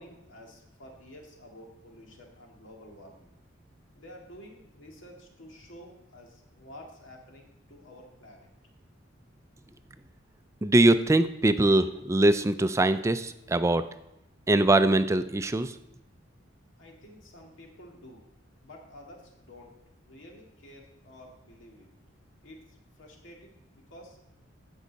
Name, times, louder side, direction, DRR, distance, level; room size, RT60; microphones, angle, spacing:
voice 1, 0.0-3.3 3.9-8.5 16.8-18.3 18.6-19.7 20.0-21.9 22.4-24.2, left 1 dB, 90° left, 0 dB, 2.0 m, -50 dB
voice 2, 10.6-13.9 14.5-15.8, right 2 dB, 15° right, 11 dB, 0.4 m, -22 dB
14.5 x 5.5 x 4.0 m, 0.88 s
head